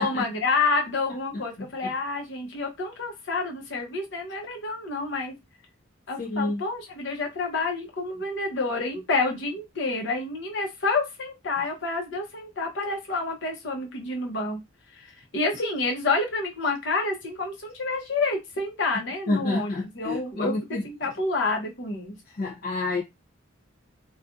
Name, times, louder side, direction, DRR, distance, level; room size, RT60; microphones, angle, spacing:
voice 1, 0.0-5.3 6.1-14.6 14.9-20.5 20.8-22.1, left 3 dB, 65° left, 0.9 m, -28 dB
voice 2, 6.2-6.6 19.3-20.8 22.3-23.0, left 2 dB, 50° left, 0.5 m, -28 dB
2.6 x 2.3 x 2.4 m
head